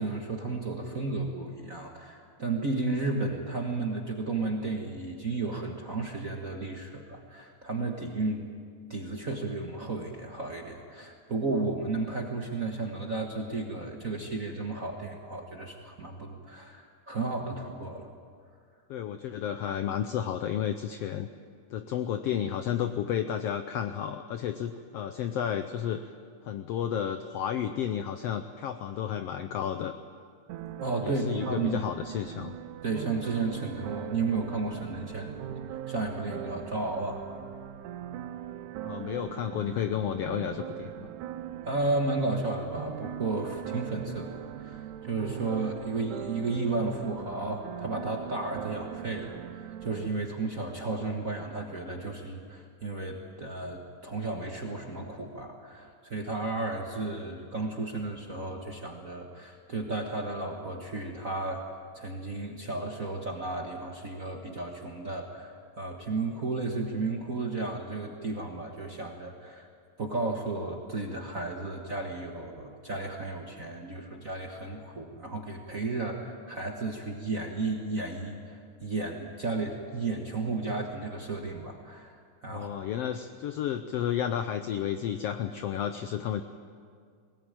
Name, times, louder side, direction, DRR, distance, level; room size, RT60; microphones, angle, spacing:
voice 1, 0.0-8.4 8.9-18.1 30.8-31.8 32.8-35.4 35.7-37.2 41.6-61.6 61.9-69.7 70.0-82.2 82.4-82.7, right 3 dB, 40° right, 1 dB, 1.2 m, -33 dB
voice 2, 18.9-21.3 21.7-26.1 26.4-29.9 31.0-32.5 38.8-41.1 82.5-86.4, left 9 dB, 75° left, 9 dB, 1.4 m, -32 dB
sound 1, 30.5-50.1, right 11 dB, 80° right, 2.2 m, -40 dB
21.0 x 18.5 x 9.0 m, 2.1 s
omnidirectional pair, 3.5 m